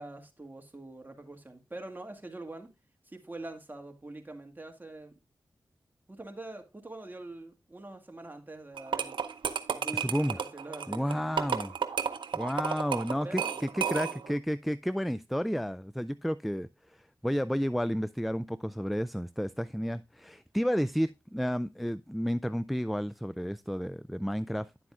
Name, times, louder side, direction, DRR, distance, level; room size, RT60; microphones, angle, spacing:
voice 1, 0.0-2.7 3.1-5.1 6.1-9.2 9.7-11.4 13.2-13.6, right 2 dB, 25° right, 2.0 m, -44 dB
sound 1, 8.8-14.3, right 7 dB, 80° right, 0.7 m, -32 dB
voice 2, 9.9-10.4 10.9-11.7 12.3-16.7 17.2-24.7, equal, ahead, 0.3 m, -31 dB
10.0 x 7.6 x 2.4 m
cardioid pair, 40°, 8 cm